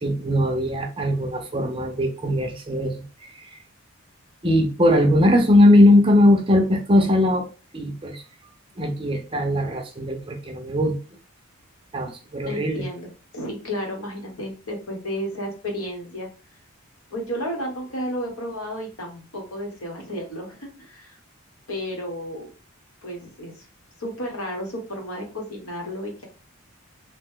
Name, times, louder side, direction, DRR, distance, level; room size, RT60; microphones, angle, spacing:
voice 1, 0.0-3.0 4.4-7.5 7.7-8.2 8.8-11.0 11.9-12.8, left 1 dB, 25° right, 3 dB, 0.5 m, -19 dB
voice 2, 12.4-16.3 17.1-21.2 21.7-22.5 23.0-23.6 24.0-26.2, equal, 70° left, 1 dB, 1.2 m, -32 dB
2.9 x 2.2 x 3.6 m, 0.34 s
head